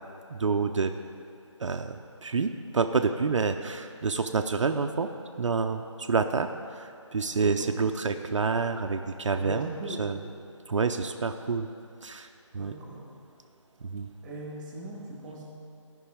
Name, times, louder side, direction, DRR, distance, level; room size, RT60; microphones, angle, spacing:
voice 1, 0.3-0.9 1.6-5.1 5.4-10.2 10.7-11.7 12.0-12.3 12.5-12.7 13.8-14.1, right 4 dB, 70° right, 6 dB, 0.5 m, -28 dB
voice 2, 7.3-7.7 9.4-10.0 12.6-13.0 14.2-15.5, right 2 dB, 10° right, -3 dB, 1.5 m, -40 dB
13.0 x 5.3 x 4.9 m, 2.5 s
figure-of-eight pair, 160°, 16 cm